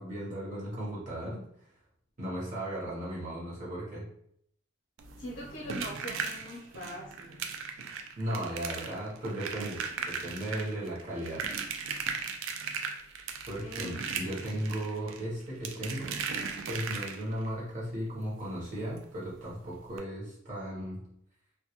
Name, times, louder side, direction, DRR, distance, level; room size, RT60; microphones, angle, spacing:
voice 1, 0.0-1.4 2.2-4.0 8.2-11.5 13.5-16.2 16.7-21.0, right 1 dB, 35° right, -6 dB, 0.8 m, -36 dB
sound 1, 5.0-17.5 19.0-19.1 19.3-19.5 19.9-20.0, right 6 dB, 65° right, 0.3 m, -37 dB
voice 2, 5.2-7.5 13.6-14.0, equal, 55° left, -3 dB, 0.5 m, -42 dB
2.2 x 2.2 x 2.8 m, 0.70 s
head